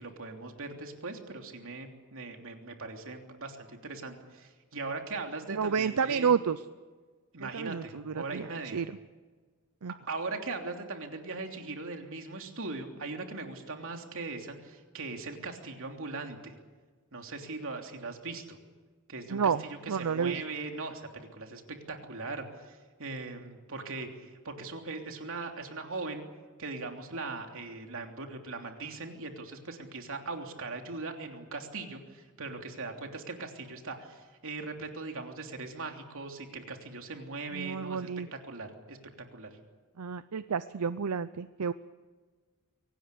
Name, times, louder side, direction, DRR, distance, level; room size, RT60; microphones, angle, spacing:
voice 1, 0.0-6.3 7.3-8.8 10.1-16.5 17.1-18.6 19.1-26.2 26.6-39.0 39.3-39.5, right 3 dB, 65° right, 4 dB, 3.2 m, -40 dB
voice 2, 5.5-6.6 7.4-8.4 8.7-8.9 9.8-9.9 19.3-19.6 19.9-20.4 37.5-38.3 40.0-41.7, right 6 dB, 85° right, 14 dB, 0.6 m, -30 dB
23.5 x 18.0 x 8.4 m, 1.4 s
head